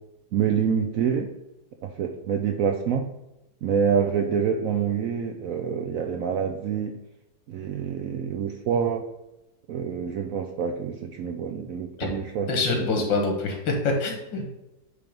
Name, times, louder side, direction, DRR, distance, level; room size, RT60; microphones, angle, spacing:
voice 1, 0.3-1.3 1.8-3.1 3.6-6.9 7.5-9.0 9.7-12.5 12.8-12.9, right 7 dB, 75° right, 3 dB, 0.8 m, -26 dB
voice 2, 12.5-14.5, left 3 dB, 80° left, 2 dB, 2.1 m, -25 dB
8.4 x 3.4 x 5.2 m, 0.95 s
omnidirectional pair, 2.0 m